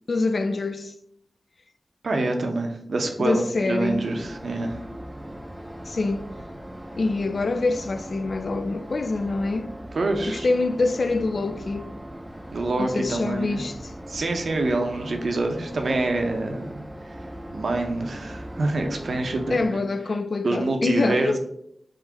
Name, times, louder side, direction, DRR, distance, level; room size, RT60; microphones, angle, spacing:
voice 1, 0.1-0.9 3.2-4.1 5.9-6.3 7.0-9.7 10.3-11.9 12.8-13.9 19.5-21.4, left 3 dB, 65° left, 0.3 m, -25 dB
voice 2, 2.0-4.8 9.9-10.5 12.5-13.6 14.1-16.9 17.5-19.8 20.4-21.4, right 2 dB, 75° right, 0.7 m, -26 dB
sound 1, 3.9-19.6, equal, 10° right, 0.5 m, -39 dB
3.7 x 2.6 x 4.6 m
cardioid pair, 55°, 0 cm